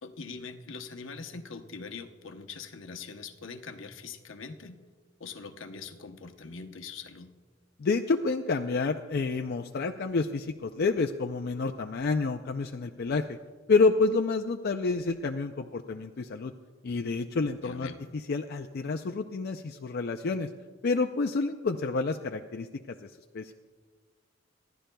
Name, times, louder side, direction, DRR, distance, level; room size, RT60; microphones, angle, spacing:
voice 1, 0.0-4.8 5.2-7.3 17.6-18.0, left 4 dB, 75° left, 7 dB, 0.8 m, -42 dB
voice 2, 7.8-13.4 13.7-16.5 16.8-20.5 20.8-23.5, left 4 dB, 55° left, 5 dB, 0.4 m, -29 dB
26.0 x 11.5 x 2.3 m, 1.5 s
head